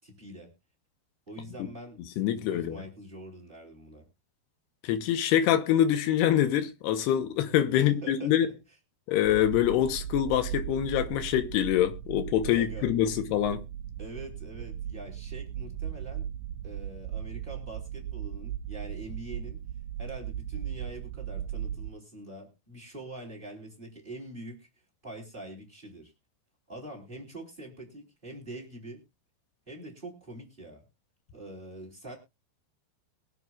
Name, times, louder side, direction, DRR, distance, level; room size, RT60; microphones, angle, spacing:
voice 1, 0.0-0.5 1.3-4.1 7.7-8.5 12.5-13.1 14.0-16.3 16.6-19.6 20.0-24.7 25.0-26.1 26.7-29.0 29.7-30.8 31.3-32.1, right 1 dB, 15° right, 3.2 m, -44 dB
voice 2, 2.2-2.8 4.8-8.5 9.1-13.6, left 11 dB, 85° left, 3.0 m, -25 dB
sound 1, 9.2-21.9, right 10 dB, 90° right, 1.8 m, -37 dB
22.5 x 7.9 x 2.4 m
omnidirectional pair, 4.6 m